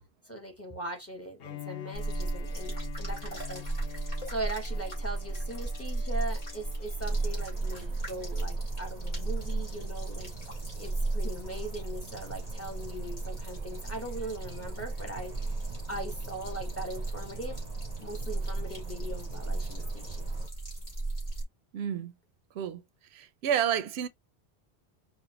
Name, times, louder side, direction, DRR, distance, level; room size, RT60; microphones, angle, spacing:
voice 1, 0.3-3.6 4.2-10.3 10.8-15.3 15.9-17.6 18.0-20.3, right 1 dB, 15° left, 0.9 m, -40 dB
Bowed string instrument, 1.4-7.4, left 14 dB, 75° left, 0.8 m, -47 dB
sound 1, 1.9-21.4, right 2 dB, 60° left, 2.8 m, -35 dB
sound 2, 7.0-20.5, right 7 dB, 50° right, 0.6 m, -48 dB
voice 2, 21.7-22.1 22.5-22.8 23.1-24.1, right 9 dB, 90° right, 0.8 m, -30 dB
5.2 x 2.3 x 2.8 m
omnidirectional pair, 1.1 m